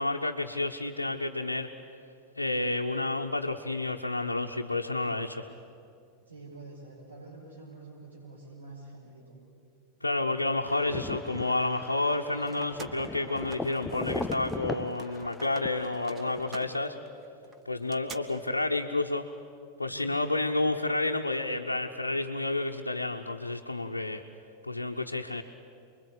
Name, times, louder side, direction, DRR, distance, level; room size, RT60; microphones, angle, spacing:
voice 1, 0.0-1.7 2.4-5.4 10.0-16.9 17.6-19.3 19.8-24.2 24.6-25.4, left 2 dB, 80° left, 0 dB, 1.0 m, -30 dB
voice 2, 6.2-9.4 16.6-16.9 19.9-20.3, right 3 dB, 75° right, -4 dB, 6.0 m, -47 dB
sound 1, 10.7-16.5, left 2 dB, 10° left, 0.7 m, -39 dB
sound 2, 12.0-14.6 14.9-18.2, right 4 dB, 25° right, 1.7 m, -47 dB
28.5 x 22.0 x 8.4 m, 2.5 s
figure-of-eight pair, 90°, 0 cm